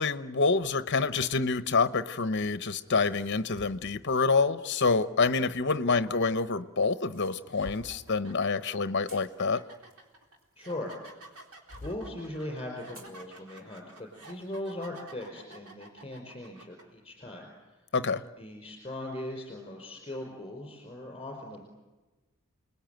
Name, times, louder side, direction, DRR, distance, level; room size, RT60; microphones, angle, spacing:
voice 1, 0.0-9.6 17.9-18.2, left 4 dB, 50° left, 13 dB, 0.9 m, -27 dB
sound 1, 1.2-1.5 2.6-3.8 4.8-4.9 6.0-6.7 7.1-8.0 8.8-10.9 11.3-12.0 12.9-13.2 13.6-13.7 14.3-14.5, left 1 dB, 40° right, 4.9 m, -49 dB
sound 2, 6.8-7.0 7.5-16.8, right 2 dB, 85° right, 3.9 m, -51 dB
voice 2, 10.6-11.4 11.8-17.8 18.4-21.6, left 1 dB, 20° left, 1 dB, 5.0 m, -40 dB
29.0 x 20.5 x 9.2 m, 1.2 s
head